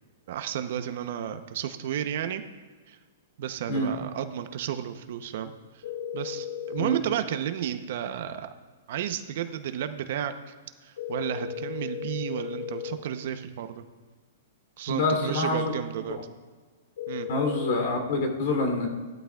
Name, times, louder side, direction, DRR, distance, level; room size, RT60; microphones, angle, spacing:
voice 1, 0.3-2.4 2.9-3.0 3.4-5.5 6.1-8.5 8.9-10.3 10.8-13.8 14.8-16.2 17.1-17.3, right 10 dB, 55° right, 9 dB, 0.7 m, -32 dB
sound 1, 5.8-7.0 11.0-13.0 17.0-17.8, left 9 dB, 80° left, 2.2 m, -35 dB
voice 2, 14.9-15.6 17.3-18.9, left 2 dB, 55° left, 3 dB, 3.0 m, -26 dB
17.0 x 12.5 x 2.4 m, 1.4 s
hypercardioid pair, 165°, 0 cm